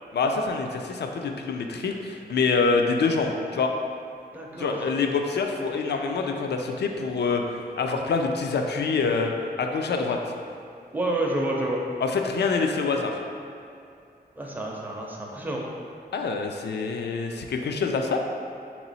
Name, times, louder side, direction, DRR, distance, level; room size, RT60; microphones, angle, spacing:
voice 1, 0.1-3.7 4.6-9.3 9.6-10.2 12.0-13.2 16.1-18.2, left 4 dB, 80° left, 3 dB, 0.4 m, -26 dB
voice 2, 4.3-4.8 10.9-11.8 14.4-15.6, right 1 dB, 10° right, -2 dB, 0.5 m, -29 dB
3.7 x 3.0 x 4.0 m, 2.5 s
wide cardioid pair, 155°, 17 cm